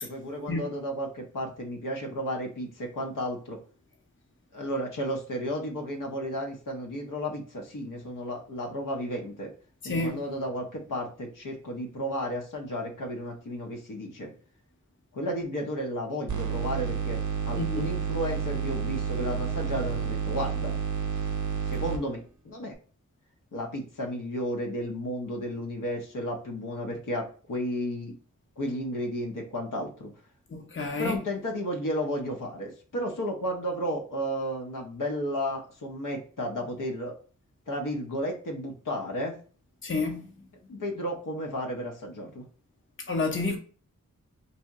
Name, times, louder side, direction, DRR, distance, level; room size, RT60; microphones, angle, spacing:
voice 1, 0.0-3.6 4.5-9.5 9.8-14.3 15.1-20.7 21.7-22.7 23.5-28.1 28.6-30.1 31.0-37.1 37.7-39.4 40.7-42.4, equal, 75° left, 0.7 m, -33 dB
voice 2, 9.8-10.2 17.6-17.9 30.5-31.2 39.8-40.2 43.1-43.6, left 3 dB, 40° left, 0.7 m, -29 dB
sound 1, 16.3-22.0, right 6 dB, 65° right, 0.6 m, -30 dB
2.8 x 2.1 x 3.4 m
wide cardioid pair, 110°, 32 cm